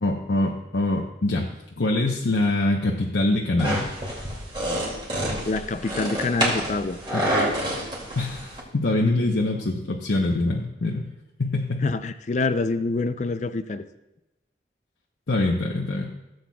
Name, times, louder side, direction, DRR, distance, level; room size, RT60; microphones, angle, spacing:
voice 1, 0.0-1.5 1.8-3.8 7.1-7.2 8.1-11.1 11.4-11.8 15.3-16.1, left 2 dB, 90° left, -1 dB, 0.9 m, -24 dB
sound 1, 3.6-8.6, equal, 25° right, 2.4 m, -28 dB
voice 2, 5.4-7.0 11.8-13.8, left 3 dB, 40° left, 10 dB, 0.4 m, -26 dB
16.0 x 7.9 x 2.3 m, 0.96 s
head